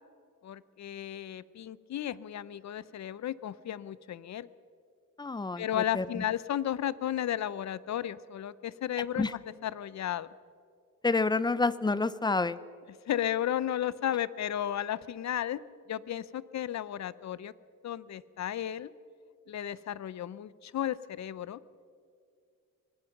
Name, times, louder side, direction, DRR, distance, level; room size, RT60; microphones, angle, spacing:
voice 1, 0.4-4.5 5.6-9.3 9.6-10.3 13.1-15.6 15.9-17.5 17.8-18.9 19.5-21.6, left 11 dB, 60° left, 18 dB, 0.6 m, -34 dB
voice 2, 5.2-6.2 9.2-9.3 11.0-12.6, left 3 dB, 15° left, 17 dB, 0.4 m, -29 dB
24.5 x 19.5 x 5.9 m, 2.3 s
wide cardioid pair, 170°, 32 cm